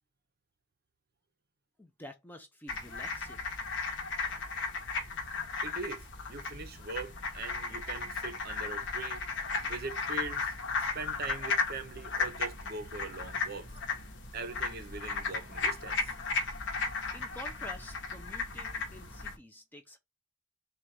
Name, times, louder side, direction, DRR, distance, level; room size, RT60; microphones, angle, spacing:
voice 1, 1.8-3.5 17.1-20.0, left 1 dB, 10° left, 0.4 m, -49 dB
sound 1, 2.7-19.4, left 4 dB, 55° left, 0.9 m, -35 dB
voice 2, 5.6-9.2 9.6-13.7 14.3-16.1, right 4 dB, 45° right, 0.6 m, -42 dB
3.9 x 2.3 x 4.5 m
head